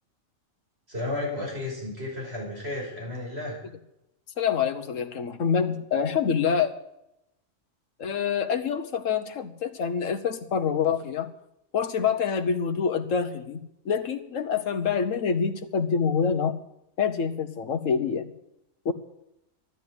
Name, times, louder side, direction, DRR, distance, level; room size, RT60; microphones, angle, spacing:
voice 1, 0.9-3.6, left 2 dB, 50° right, -2 dB, 5.9 m, -33 dB
voice 2, 4.4-6.7 8.0-11.3 11.7-16.6 17.0-18.3 18.8-18.9, left 6 dB, 70° left, 10 dB, 1.4 m, -26 dB
13.5 x 10.0 x 7.9 m, 0.84 s
omnidirectional pair, 1.4 m